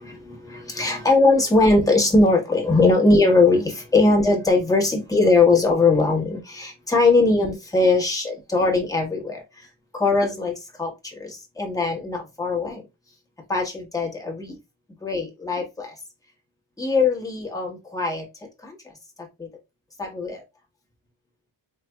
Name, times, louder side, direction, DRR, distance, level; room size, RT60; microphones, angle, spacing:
voice 1, 0.0-9.4 9.9-10.5 10.8-12.8 13.5-14.6 15.0-15.9 16.8-18.3 18.6-18.7 20.0-20.4, left 3 dB, 5° left, 1.3 m, -20 dB
4.2 x 3.3 x 2.2 m
wide cardioid pair, 120°, 46 cm